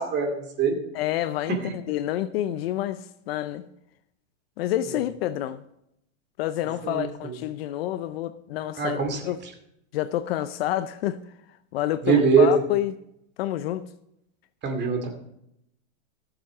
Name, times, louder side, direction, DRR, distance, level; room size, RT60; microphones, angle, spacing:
voice 1, 0.0-0.8 6.8-7.3 8.8-9.3 12.0-12.6 14.6-15.1, right 5 dB, 25° right, 2.4 m, -22 dB
voice 2, 0.9-3.6 4.6-5.6 6.4-9.4 9.9-11.2 11.7-12.9 13.4-13.9, left 13 dB, 50° left, 0.6 m, -28 dB
14.5 x 7.4 x 4.9 m
hypercardioid pair, 140°, 40 cm